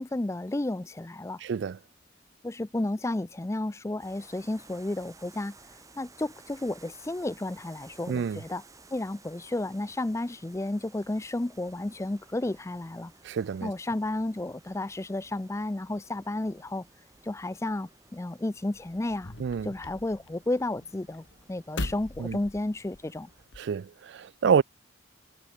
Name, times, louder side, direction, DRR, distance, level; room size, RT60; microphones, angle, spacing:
voice 1, 0.0-1.4 2.4-5.5 6.0-8.6 8.9-13.1 13.6-16.9 17.2-19.3 19.6-23.3, left 2 dB, 15° left, 0.4 m, -32 dB
voice 2, 1.4-1.8 8.1-8.4 13.2-13.7 19.4-19.7 22.2-22.4 23.6-24.6, right 6 dB, 60° right, 0.3 m, -27 dB
sound 1, 4.0-23.4, right 3 dB, 15° right, 1.6 m, -57 dB
sound 2, 18.7-23.8, left 2 dB, 65° left, 1.8 m, -41 dB
head